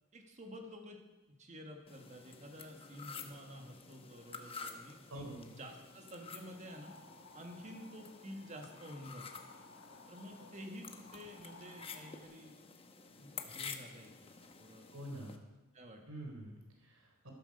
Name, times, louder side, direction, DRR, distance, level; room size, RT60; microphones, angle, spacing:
voice 1, 0.1-1.0 1.4-6.9 7.3-9.2 10.1-12.6 13.2-14.9 15.7-16.0, equal, 35° right, 3 dB, 1.8 m, -50 dB
sound 1, 1.9-15.4, left 5 dB, 25° left, 1.0 m, -51 dB
voice 2, 5.1-5.5 10.4-10.5 14.9-15.3 16.1-17.3, right 1 dB, 85° right, 1 dB, 3.7 m, -47 dB
sound 2, 6.3-12.2, left 3 dB, 65° left, 2.1 m, -59 dB
13.5 x 13.5 x 5.5 m, 1.1 s
head